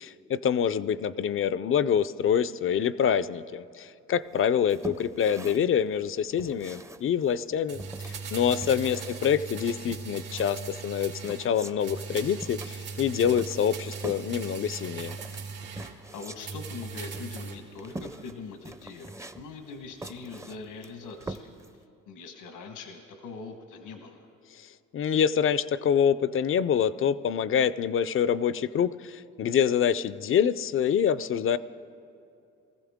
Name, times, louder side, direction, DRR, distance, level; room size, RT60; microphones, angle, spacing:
voice 1, 0.0-15.2 24.5-31.6, left 8 dB, 45° left, 16 dB, 0.5 m, -26 dB
sound 1, 4.3-21.8, right 2 dB, 10° right, 0.5 m, -44 dB
sound 2, 7.7-11.5 11.8-15.9 16.4-17.6 17.9-18.0, right 5 dB, 85° right, 2.6 m, -39 dB
voice 2, 15.9-21.5 22.1-24.3, left 4 dB, 85° left, 5 dB, 1.3 m, -42 dB
21.0 x 14.5 x 3.6 m, 2.7 s
cardioid pair, 90°, 30 cm